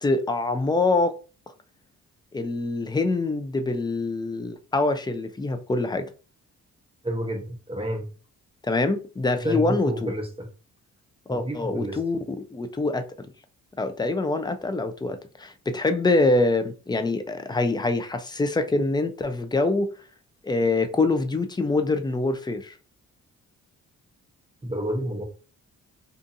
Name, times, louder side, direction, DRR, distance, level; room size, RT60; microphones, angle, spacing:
voice 1, 0.0-1.2 2.3-6.1 8.6-10.1 11.3-12.2 12.5-13.1 13.8-19.9 20.4-22.7, left 2 dB, 15° left, 0.4 m, -25 dB
voice 2, 7.0-8.1 9.4-10.5 11.3-12.0 24.6-25.2, equal, 20° right, 0.8 m, -30 dB
2.6 x 2.4 x 2.6 m
cardioid pair, 80°, 32 cm